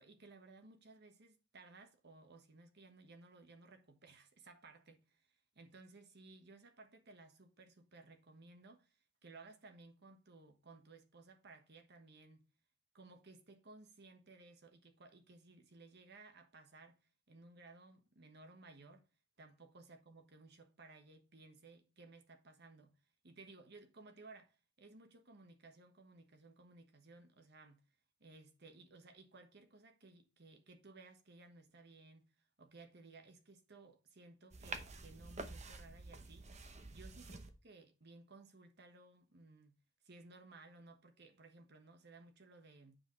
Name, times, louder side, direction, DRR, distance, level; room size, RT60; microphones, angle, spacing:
voice 1, 0.0-12.4 12.9-17.0 17.3-19.0 19.4-23.0 23.2-27.8 28.2-32.2 32.6-36.5 36.9-39.8 40.0-43.0, right 3 dB, 55° right, 1.3 m, -59 dB
sound 1, 34.5-37.5, right 3 dB, 35° right, 0.9 m, -48 dB
8.9 x 5.0 x 3.1 m
head